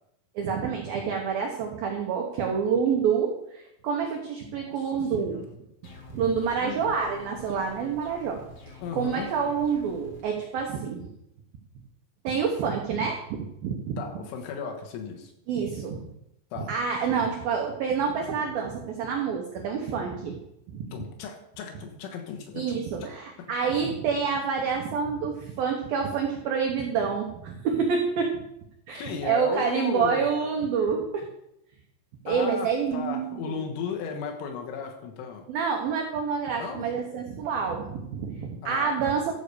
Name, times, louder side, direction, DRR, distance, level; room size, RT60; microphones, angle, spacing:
voice 1, 0.4-5.4 6.1-8.4 8.7-11.0 12.2-14.0 15.5-16.0 16.7-20.4 20.7-20.8 22.6-28.3 28.9-31.3 32.3-33.6 35.5-39.3, right 6 dB, 80° right, 2 dB, 2.1 m, -28 dB
voice 2, 4.4-4.7 5.2-5.5 6.6-6.8 8.8-9.3 14.0-15.3 16.5-16.7 20.9-23.1 23.4-23.5 23.8-23.9 28.9-30.3 32.3-35.5 36.5-36.9 38.6-39.2, left 6 dB, 75° left, 3 dB, 3.6 m, -35 dB
sound 1, 5.8-10.2, left 3 dB, 55° left, 1.9 m, -47 dB
13.5 x 5.0 x 6.8 m, 0.80 s
omnidirectional pair, 5.9 m